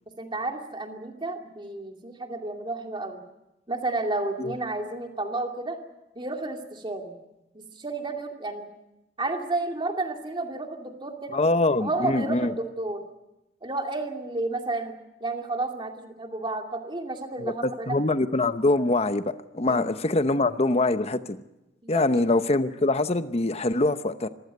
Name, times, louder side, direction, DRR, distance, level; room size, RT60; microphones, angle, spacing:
voice 1, 0.2-3.2 3.7-5.8 6.1-7.2 7.5-8.7 9.2-11.4 11.8-13.0 13.6-18.0 19.7-19.9 21.8-22.0, right 2 dB, 25° right, 3 dB, 2.5 m, -31 dB
voice 2, 11.3-12.5 17.4-21.4 21.9-24.3, left 2 dB, 35° left, 11 dB, 0.9 m, -24 dB
25.5 x 15.0 x 9.4 m, 0.94 s
head